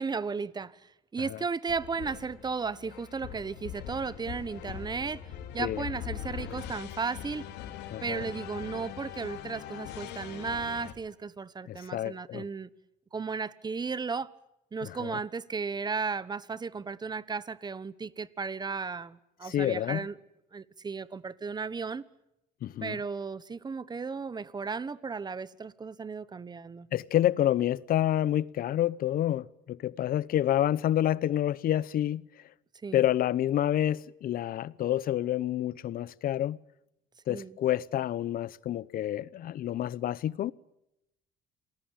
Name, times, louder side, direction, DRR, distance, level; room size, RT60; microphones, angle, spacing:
voice 1, 0.0-5.2 5.5-7.5 8.0-12.7 13.1-14.3 14.7-20.1 20.5-22.0 22.8-26.9 32.8-33.0 37.3-37.6, right 5 dB, 25° right, 1.2 m, -35 dB
sound 1, 1.7-10.9, left 10 dB, 85° left, 3.5 m, -41 dB
voice 2, 7.9-8.2 11.7-12.4 14.8-15.2 19.4-20.0 22.6-23.0 26.9-32.2 32.9-36.6 37.3-40.5, left 12 dB, 60° left, 0.9 m, -28 dB
28.0 x 20.0 x 9.0 m
cardioid pair, 110°, 17 cm